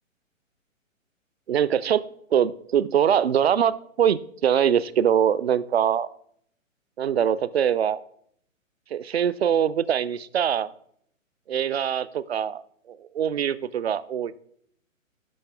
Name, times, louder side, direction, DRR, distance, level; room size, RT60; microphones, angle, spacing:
voice 1, 1.5-2.1 2.3-3.7 4.0-6.1 7.0-8.0 8.9-10.7 11.5-12.6 12.9-14.3, right 9 dB, 50° right, 17 dB, 0.4 m, -23 dB
11.5 x 5.7 x 3.4 m, 0.67 s
figure-of-eight pair, 125°, 40 cm